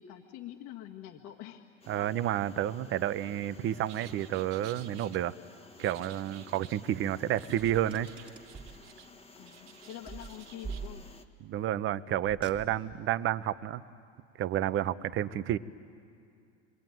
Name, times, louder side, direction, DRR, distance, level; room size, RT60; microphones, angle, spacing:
voice 1, 0.0-1.7 9.3-11.1, left 11 dB, 50° left, 2 dB, 1.8 m, -46 dB
sound 1, 1.8-11.3, left 3 dB, 15° left, 1.5 m, -55 dB
voice 2, 1.9-5.3 5.8-8.1 11.4-13.8 14.4-15.6, right 12 dB, 35° right, 14 dB, 0.8 m, -30 dB
sound 2, 3.9-5.2 5.8-6.9 7.4-9.1 9.4-10.9, right 11 dB, 70° right, 1.7 m, -54 dB
Car, 7.9-8.8 10.1-11.4 12.2-13.1, right 5 dB, 15° right, 2.2 m, -44 dB
28.0 x 21.0 x 9.3 m, 2.4 s
supercardioid pair, 120°, 37 cm